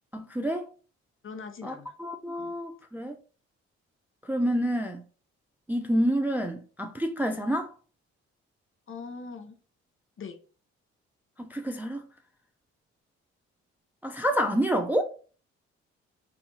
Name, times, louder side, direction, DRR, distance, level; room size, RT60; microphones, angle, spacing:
voice 1, 0.1-0.7 1.6-3.2 4.2-5.0 5.7-7.7 11.4-12.1 14.0-15.0, equal, 5° right, 0.3 m, -28 dB
voice 2, 1.2-1.9 2.4-2.5 8.9-9.6 10.2-10.4, left 5 dB, 40° left, 0.6 m, -41 dB
2.6 x 2.6 x 2.8 m
hypercardioid pair, 45°, 32 cm